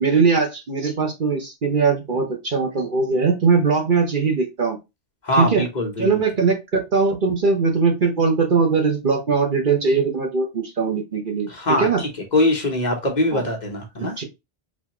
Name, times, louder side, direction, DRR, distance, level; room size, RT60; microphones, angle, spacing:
voice 1, 0.0-4.8 5.3-5.6 6.0-6.6 6.9-12.0 13.3-13.4 14.0-14.2, right 4 dB, 50° right, 1.1 m, -20 dB
voice 2, 5.2-6.1 11.5-11.9 12.3-14.1, left 1 dB, 45° left, 1.1 m, -22 dB
4.2 x 2.8 x 2.9 m
omnidirectional pair, 1.1 m